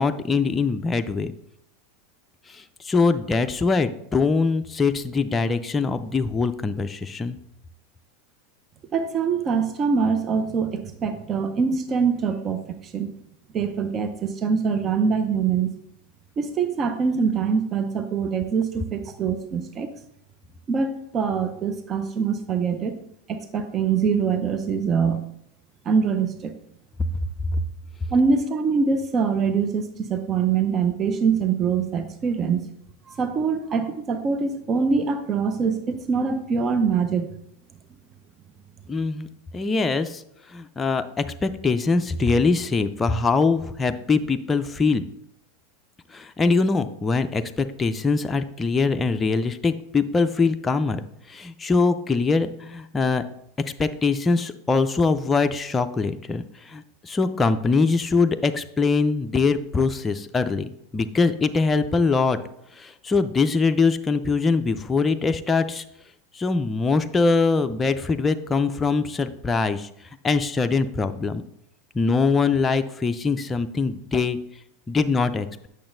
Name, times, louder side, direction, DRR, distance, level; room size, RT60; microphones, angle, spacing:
voice 1, 0.0-1.3 2.5-7.4 38.9-39.3 39.5-40.2 40.5-45.0 46.1-51.0 51.3-53.2 53.8-60.7 60.9-62.4 62.7-65.8 66.3-69.9 70.2-71.4 71.9-74.4 74.9-75.7, left 4 dB, 20° left, 8 dB, 0.4 m, -23 dB
voice 2, 8.9-13.1 13.5-15.7 16.4-19.9 20.7-23.0 23.3-25.2 25.9-26.5 28.1-32.7 33.1-37.3, right 5 dB, 35° right, 8 dB, 0.6 m, -24 dB
8.6 x 6.5 x 2.6 m, 0.74 s
hypercardioid pair, 95°, 0 cm